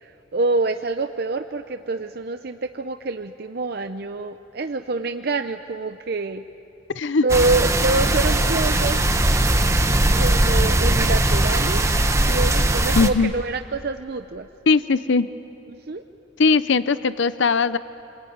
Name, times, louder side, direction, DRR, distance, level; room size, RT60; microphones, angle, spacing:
voice 1, 0.0-6.4 7.2-9.0 10.2-11.8 12.3-14.5 15.9-16.0, right 3 dB, 55° right, 8 dB, 0.6 m, -26 dB
voice 2, 6.9-7.3 13.0-13.3 14.7-15.3 16.4-17.8, left 4 dB, 70° left, 14 dB, 0.6 m, -19 dB
sound 1, 7.3-13.1, right 1 dB, 15° right, 1.0 m, -19 dB
27.5 x 21.5 x 9.5 m, 2.9 s
head